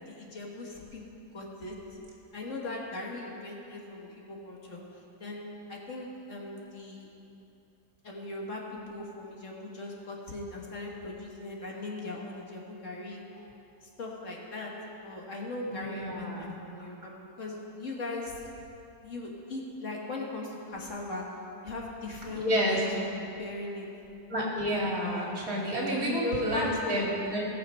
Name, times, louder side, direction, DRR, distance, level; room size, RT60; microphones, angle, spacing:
voice 1, 0.0-1.8 2.3-7.1 8.0-13.2 13.8-14.7 15.0-18.4 19.0-21.3 21.6-23.0 23.3-23.9 26.0-27.0, left 2 dB, 50° left, -2 dB, 1.7 m, -39 dB
voice 2, 15.7-16.5 22.3-22.8 24.3-27.5, equal, 55° right, -4 dB, 2.7 m, -30 dB
18.5 x 6.6 x 5.4 m, 2.8 s
omnidirectional pair, 1.8 m